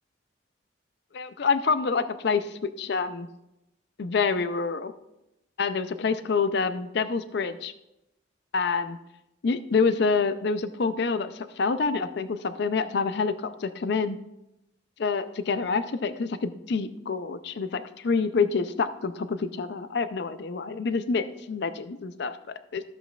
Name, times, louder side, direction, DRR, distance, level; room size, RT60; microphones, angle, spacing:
voice 1, 1.1-3.3 4.0-4.9 5.6-7.7 8.5-9.0 9.4-14.2 15.0-22.4 22.7-22.8, left 4 dB, 55° left, 12 dB, 0.4 m, -27 dB
12.0 x 7.8 x 2.3 m, 0.90 s
head